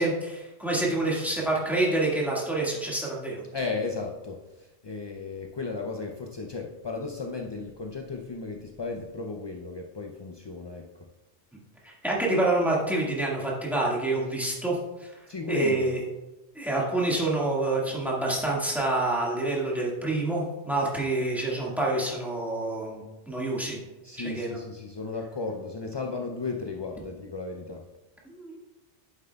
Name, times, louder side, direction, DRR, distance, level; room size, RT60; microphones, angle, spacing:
voice 1, 0.0-3.4 11.8-15.1 15.5-16.0 16.5-23.8 24.2-24.6 28.3-28.6, right 2 dB, ahead, -4 dB, 1.7 m, -27 dB
voice 2, 3.5-10.9 15.3-15.9 24.0-27.8, left 3 dB, 45° left, 1 dB, 0.3 m, -35 dB
9.0 x 7.4 x 2.3 m, 1.1 s
omnidirectional pair, 1.2 m